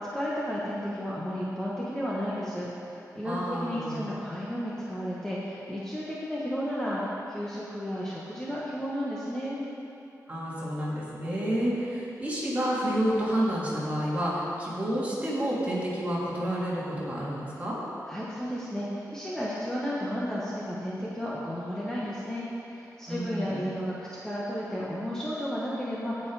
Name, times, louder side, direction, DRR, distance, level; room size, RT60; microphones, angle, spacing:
voice 1, 0.1-9.6 18.1-26.3, equal, 10° left, -7 dB, 1.3 m, -33 dB
voice 2, 3.2-4.0 10.3-17.8 23.1-23.6, equal, 20° right, -7 dB, 2.8 m, -29 dB
16.5 x 5.6 x 4.9 m, 2.8 s
wide cardioid pair, 120°, 7 cm